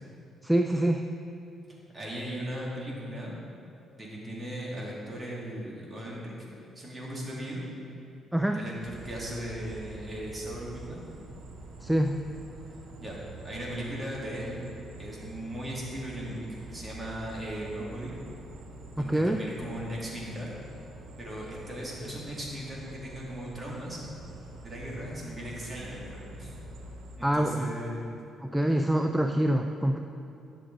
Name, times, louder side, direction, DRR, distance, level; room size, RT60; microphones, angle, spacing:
voice 1, 0.4-1.1 8.3-8.6 11.8-12.2 19.0-19.4 27.2-27.7 28.4-30.0, right 1 dB, 5° right, 4 dB, 0.4 m, -25 dB
voice 2, 1.9-3.4 4.0-6.3 6.8-7.6 8.5-11.0 13.0-13.2 13.4-14.6 15.0-18.1 19.0-20.5 21.2-24.0 24.6-26.5 27.2-28.2, equal, 25° right, -4 dB, 2.2 m, -37 dB
sound 1, 8.8-27.2, right 2 dB, 80° right, 0.9 m, -46 dB
10.0 x 6.7 x 3.9 m, 2.7 s
cardioid pair, 90°, 0 cm